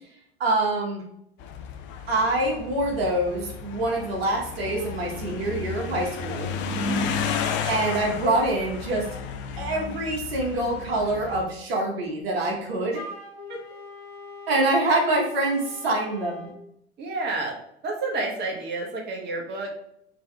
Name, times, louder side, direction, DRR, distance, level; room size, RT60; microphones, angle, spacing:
voice 1, 0.4-1.0 2.1-6.5 7.6-9.1 9.6-13.0 14.5-16.5, right 2 dB, 70° right, -1 dB, 1.2 m, -25 dB
sound 1, 1.4-11.5, left 5 dB, 40° left, 0.6 m, -33 dB
voice 2, 6.8-7.3 13.5-13.6 17.0-17.5 17.8-19.7, right 2 dB, 30° right, 0 dB, 1.2 m, -30 dB
Wind instrument woodwind instrument, 12.9-16.6, left 3 dB, 70° left, 1.0 m, -42 dB
5.3 x 3.0 x 3.4 m, 0.73 s
figure-of-eight pair, 80°, 32 cm